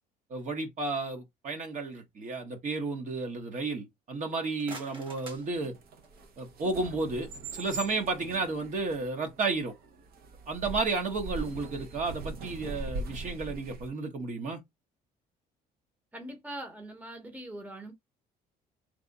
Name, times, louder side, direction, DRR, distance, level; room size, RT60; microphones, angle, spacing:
voice 1, 0.3-5.7 6.4-9.7 10.5-14.6, right 3 dB, 45° right, 1.3 m, -32 dB
sound 1, 4.3-6.4, right 2 dB, 30° right, 1.6 m, -48 dB
sound 2, 5.3-13.9, right 2 dB, 65° right, 1.0 m, -41 dB
voice 2, 16.1-17.9, right 1 dB, 10° right, 1.0 m, -42 dB
3.3 x 2.5 x 4.1 m
cardioid pair, 110°, 17 cm